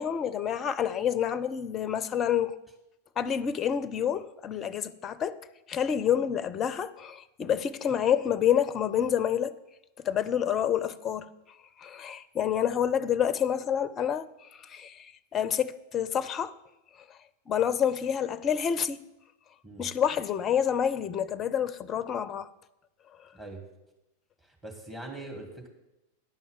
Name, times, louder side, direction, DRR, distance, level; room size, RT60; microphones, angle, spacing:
voice 1, 0.0-2.6 3.2-5.4 5.7-9.5 10.0-11.3 11.8-14.3 14.6-16.5 17.5-19.0 19.8-22.5, left 9 dB, 25° left, 0.5 m, -28 dB
voice 2, 23.3-23.6 24.4-25.7, right 2 dB, 15° right, 2.2 m, -42 dB
10.5 x 5.4 x 7.4 m
figure-of-eight pair, 90°, 0 cm